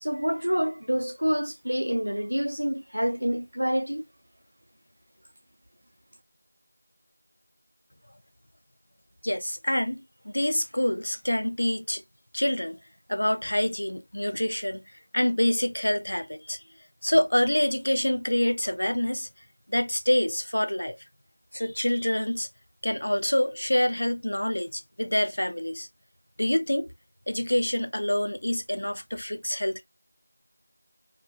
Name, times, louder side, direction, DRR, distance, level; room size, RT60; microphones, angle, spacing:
voice 1, 0.0-4.0, equal, 60° right, 0.4 m, -27 dB
voice 2, 9.2-12.0 12.3-12.8 13.1-14.8 15.1-16.6 17.0-19.3 19.7-21.0 21.5-22.5 22.8-25.9 26.4-26.9 27.3-29.8, left 1 dB, 35° left, 0.4 m, -26 dB
4.6 x 2.1 x 2.3 m
figure-of-eight pair, 180°, 0 cm